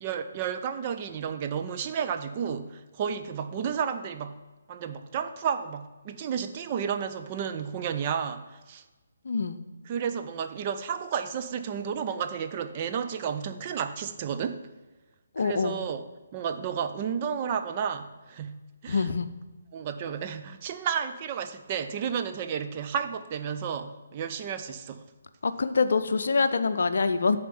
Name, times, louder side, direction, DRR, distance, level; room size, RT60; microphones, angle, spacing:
voice 1, 0.0-4.4 4.7-8.8 9.9-14.6 15.4-16.0 16.3-19.1 19.7-25.0, right 7 dB, 30° right, 8 dB, 0.5 m, -32 dB
voice 2, 9.2-9.6 15.4-15.8 18.9-19.3 25.4-27.4, left 4 dB, 60° left, 10 dB, 0.6 m, -25 dB
10.0 x 4.3 x 7.0 m, 1.2 s
figure-of-eight pair, 140°, 0 cm